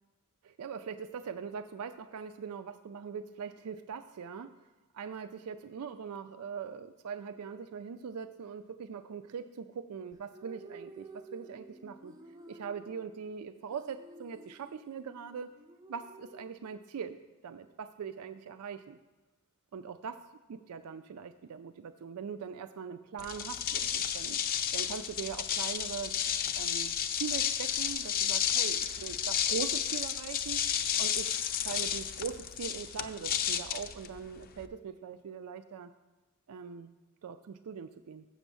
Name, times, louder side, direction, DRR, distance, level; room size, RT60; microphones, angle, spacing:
voice 1, 0.4-4.5 4.9-12.2 12.5-15.5 15.9-17.2 17.4-19.0 19.7-20.2 20.5-24.4 24.7-26.1 26.6-30.6 31.0-35.9 36.5-36.9 37.2-38.2, right 6 dB, 90° right, 10 dB, 0.4 m, -41 dB
sound 1, 10.1-17.2, right 2 dB, 15° right, 0.4 m, -52 dB
sound 2, 23.2-34.7, left 9 dB, 40° left, 0.5 m, -32 dB
7.2 x 7.0 x 6.8 m, 1.2 s
head